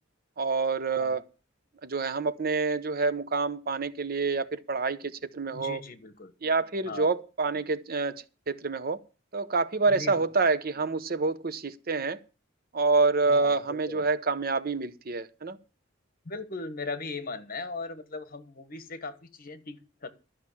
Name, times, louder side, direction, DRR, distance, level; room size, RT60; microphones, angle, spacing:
voice 1, 0.4-1.2 1.8-5.8 6.4-9.0 9.3-12.2 12.7-15.6, right 4 dB, 50° right, 0.9 m, -27 dB
voice 2, 5.5-6.3 6.8-7.1 9.9-10.3 13.3-14.0 16.2-20.1, left 3 dB, 50° left, 1.4 m, -38 dB
13.0 x 5.9 x 8.5 m
head